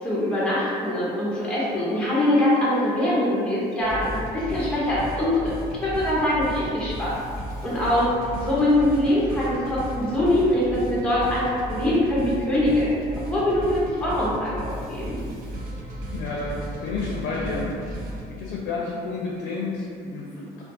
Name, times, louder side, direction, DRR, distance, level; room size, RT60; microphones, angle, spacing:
voice 1, 0.0-5.5 5.8-7.2 7.6-8.1 8.4-12.9 13.3-15.3, left 1 dB, 5° left, -8 dB, 0.6 m, -23 dB
sound 1, 3.8-18.3, right 1 dB, 60° right, 0.5 m, -35 dB
voice 2, 16.1-18.0 18.4-20.6, left 3 dB, 70° left, -3 dB, 0.4 m, -30 dB
2.3 x 2.2 x 2.6 m, 2.3 s
cardioid pair, 110°, 17 cm